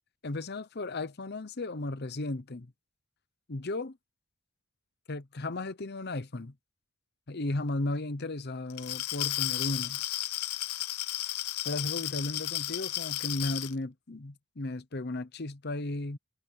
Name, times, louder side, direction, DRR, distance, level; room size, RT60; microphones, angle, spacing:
voice 1, 0.2-2.7 3.5-4.0 5.1-6.5 7.3-10.0 11.6-16.2, left 2 dB, 45° left, 0.8 m, -35 dB
Glass, 8.7-13.7, left 15 dB, 85° left, 0.7 m, -33 dB
head